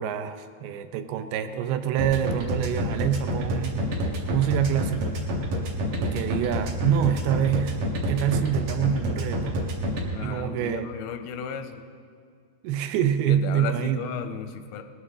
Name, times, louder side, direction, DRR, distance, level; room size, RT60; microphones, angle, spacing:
voice 1, 0.0-3.9 4.3-5.2 6.0-7.8 8.1-9.6 10.2-10.9 12.6-14.1, right 10 dB, 85° right, 9 dB, 2.7 m, -26 dB
sound 1, 2.0-10.0, equal, 60° right, 2.9 m, -27 dB
voice 2, 10.1-11.8 13.3-14.8, left 7 dB, 85° left, 8 dB, 2.5 m, -35 dB
20.5 x 12.5 x 3.7 m, 2.2 s
omnidirectional pair, 4.5 m